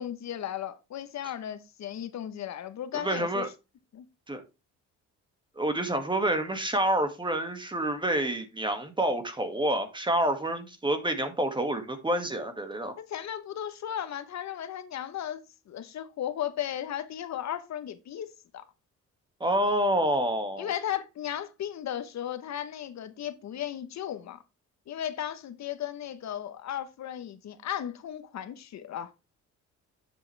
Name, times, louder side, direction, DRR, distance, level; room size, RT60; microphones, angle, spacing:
voice 1, 0.0-3.4 3.9-4.0 13.0-18.3 18.5-18.6 20.6-24.4 24.9-29.1, left 10 dB, 65° left, 1.0 m, -35 dB
voice 2, 2.9-3.5 4.3-4.4 5.6-12.9 19.4-20.7, right 1 dB, 15° right, 2.0 m, -28 dB
9.7 x 7.5 x 3.4 m
cardioid pair, 90°, 30 cm